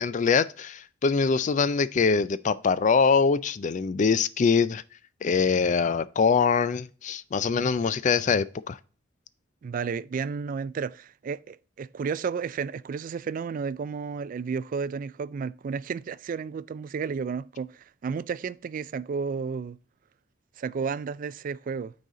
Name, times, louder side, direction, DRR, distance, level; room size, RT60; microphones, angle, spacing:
voice 1, 0.0-4.8 5.2-8.8, left 5 dB, 40° left, 0.4 m, -23 dB
voice 2, 9.6-19.8 20.6-21.9, right 5 dB, 45° right, 0.3 m, -32 dB
9.3 x 4.0 x 3.7 m
head